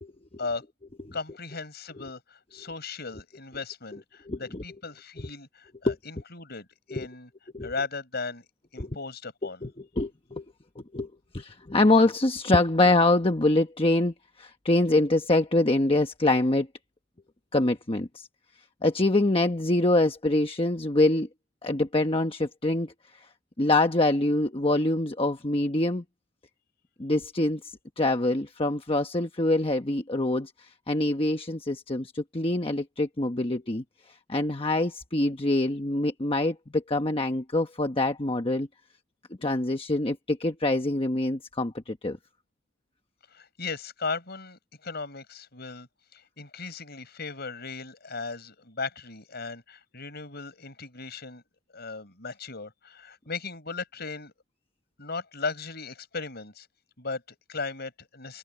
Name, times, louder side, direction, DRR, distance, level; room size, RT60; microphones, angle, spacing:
voice 1, 1.1-7.3 7.6-8.5 8.7-9.6 43.3-51.4 51.7-54.3 55.0-56.7 57.0-58.4, left 4 dB, 55° left, 6.6 m, -37 dB
voice 2, 4.3-4.6 5.8-6.0 6.9-7.1 7.5-7.7 8.8-8.9 9.6-9.7 10.0-10.4 10.8-16.7 17.5-18.3 18.8-21.3 21.6-23.3 23.6-26.0 27.0-33.8 34.3-38.7 39.4-42.2, left 2 dB, 30° left, 1.2 m, -25 dB
open air
head